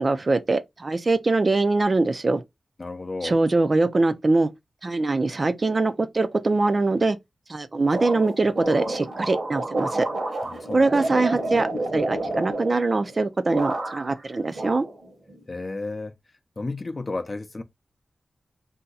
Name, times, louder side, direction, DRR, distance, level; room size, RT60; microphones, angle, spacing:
voice 1, 0.0-2.4 3.2-4.5 4.8-7.2 7.5-10.1 10.7-14.9, right 3 dB, 45° right, 0.5 m, -23 dB
voice 2, 2.8-3.4 10.4-10.9 15.5-16.1 16.6-17.6, left 3 dB, 40° left, 0.6 m, -32 dB
sound 1, 7.9-13.2 13.5-14.2 14.5-15.4, right 2 dB, 65° right, 1.1 m, -30 dB
2.7 x 2.2 x 3.9 m
wide cardioid pair, 70°, 0 cm